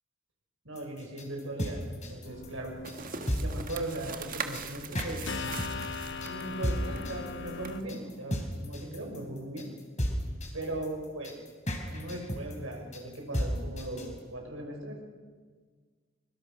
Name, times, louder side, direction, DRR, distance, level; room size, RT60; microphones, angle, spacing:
voice 1, 0.6-1.8 2.1-2.8 3.3-5.2 6.2-9.7 10.5-11.3 11.9-15.0, right 1 dB, 75° right, 1 dB, 6.2 m, -38 dB
sound 1, 0.8-14.2, equal, 35° left, 3.8 m, -34 dB
sound 2, 2.2-7.8, left 4 dB, 60° left, 1.2 m, -41 dB
sound 3, 2.8-7.8, right 6 dB, 45° right, 1.5 m, -41 dB
24.5 x 22.5 x 6.3 m, 1.5 s
head